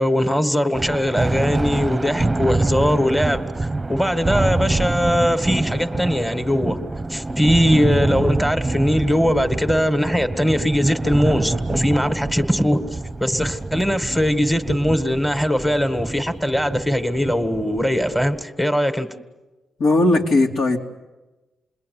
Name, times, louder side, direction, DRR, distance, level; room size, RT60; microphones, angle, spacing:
voice 1, 0.0-6.8 7.1-12.8 13.2-19.1, equal, 5° left, 2.0 m, -20 dB
Thunder, 0.7-18.4, right 2 dB, 20° right, 1.0 m, -26 dB
voice 2, 19.8-20.8, left 2 dB, 75° left, 3.4 m, -17 dB
29.0 x 21.5 x 9.6 m
cardioid pair, 85°, 0 cm